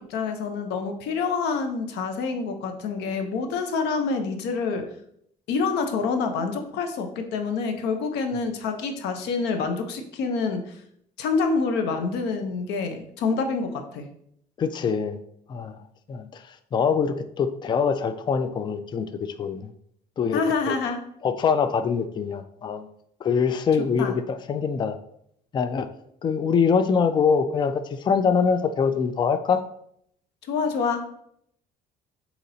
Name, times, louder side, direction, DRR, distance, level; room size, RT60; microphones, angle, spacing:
voice 1, 0.0-4.9 5.5-10.7 11.2-14.1 20.3-21.0 24.0-24.1 30.5-31.0, left 4 dB, 85° left, 6 dB, 0.7 m, -27 dB
voice 2, 14.6-15.2 15.5-16.4 16.7-19.7 20.2-20.8 21.2-22.9 23.2-25.0 25.5-25.9 26.2-29.6, left 6 dB, 25° left, 10 dB, 0.3 m, -24 dB
4.1 x 2.9 x 3.9 m, 0.70 s
cardioid pair, 110°, 17 cm